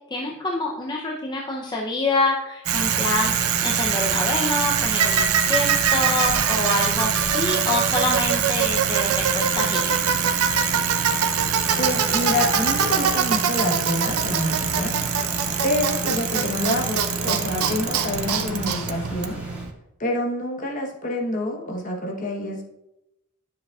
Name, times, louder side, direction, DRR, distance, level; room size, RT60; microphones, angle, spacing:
voice 1, 0.1-10.0, left 2 dB, 20° left, -2 dB, 0.6 m, -26 dB
Bicycle, 2.7-19.7, right 7 dB, 85° right, 0.7 m, -23 dB
sound 1, 8.9-19.6, equal, 5° right, 2.3 m, -38 dB
voice 2, 11.8-14.9 15.6-19.4 20.0-22.6, left 1 dB, 40° left, 1 dB, 1.1 m, -27 dB
10.0 x 7.2 x 2.4 m, 0.89 s
head